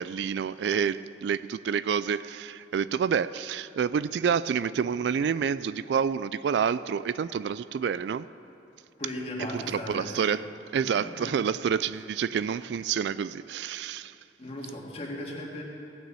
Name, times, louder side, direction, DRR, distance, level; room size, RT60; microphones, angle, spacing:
voice 1, 0.0-8.3 9.5-10.5 10.7-14.2, right 7 dB, 70° right, 16 dB, 0.3 m, -28 dB
voice 2, 9.0-10.3 11.0-11.4 14.4-15.6, left 1 dB, 35° left, -2 dB, 2.0 m, -37 dB
16.5 x 6.3 x 8.2 m, 2.7 s
head